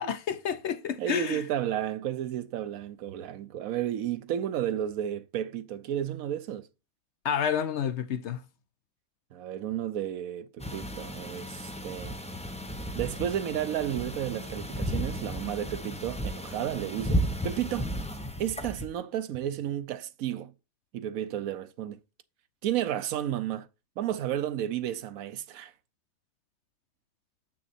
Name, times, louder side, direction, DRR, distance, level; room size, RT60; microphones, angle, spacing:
voice 1, 0.0-1.4 7.2-8.5, left 8 dB, 60° left, 0.8 m, -30 dB
voice 2, 1.0-6.7 9.3-12.1 12.9-17.9 18.4-20.5 20.9-22.0 22.6-23.7 24.0-25.7, right 11 dB, 75° right, 1.1 m, -32 dB
sound 1, 10.6-18.8, equal, 5° left, 0.6 m, -34 dB
7.4 x 6.2 x 4.2 m
omnidirectional pair, 1.5 m